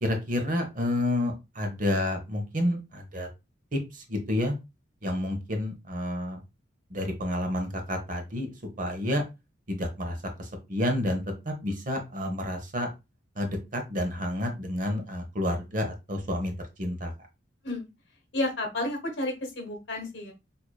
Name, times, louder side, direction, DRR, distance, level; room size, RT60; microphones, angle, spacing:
voice 1, 0.0-3.3 3.7-3.8 4.1-4.5 5.0-6.4 6.9-8.5 8.8-9.2 9.7-12.9 13.4-16.5 16.8-17.1, left 1 dB, 45° right, 5 dB, 0.9 m, -29 dB
voice 2, 18.3-20.3, left 2 dB, 70° left, 3 dB, 1.1 m, -31 dB
4.7 x 2.7 x 2.2 m, 0.24 s
head